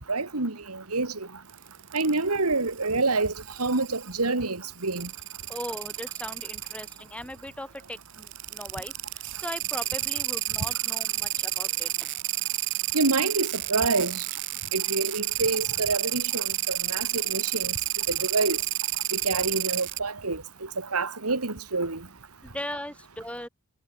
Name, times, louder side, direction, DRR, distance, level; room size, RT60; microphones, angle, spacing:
voice 1, 0.1-1.3 1.9-3.3 3.6-5.1 12.9-14.2 14.7-17.7 18.1-18.6 19.1-20.4 20.8-22.0, right 3 dB, 85° right, 2.4 m, -27 dB
sound 1, 1.5-2.2 2.8-4.1 4.8-7.0 8.1-20.0, right 17 dB, 55° right, 0.7 m, -30 dB
voice 2, 5.5-8.9 9.4-11.9 22.4-23.5, left 1 dB, 5° left, 3.4 m, -38 dB
head